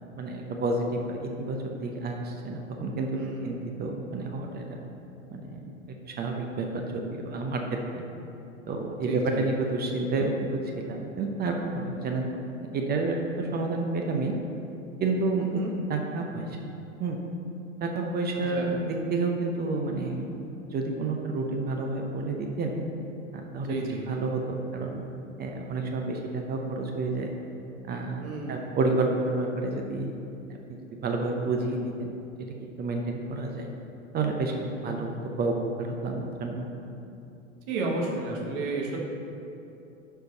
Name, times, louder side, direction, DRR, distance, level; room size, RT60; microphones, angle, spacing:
voice 1, 0.2-3.1 3.4-4.8 5.3-5.7 6.0-7.6 7.9-8.0 8.7-12.3 12.7-14.3 15.0-15.5 15.9-16.5 17.0-17.2 17.8-20.4 20.7-22.8 23.3-23.7 24.1-25.0 25.4-27.3 27.8-30.1 30.9-32.1 32.8-33.7 34.1-36.7, right 3 dB, 25° right, 2 dB, 0.7 m, -30 dB
voice 2, 3.1-3.7 9.1-9.5 15.4-15.7 18.5-18.7 23.7-24.1 28.2-28.7 37.7-39.0, right 3 dB, 50° right, -1 dB, 1.6 m, -32 dB
11.5 x 4.7 x 4.0 m, 2.8 s
hypercardioid pair, 100°, 39 cm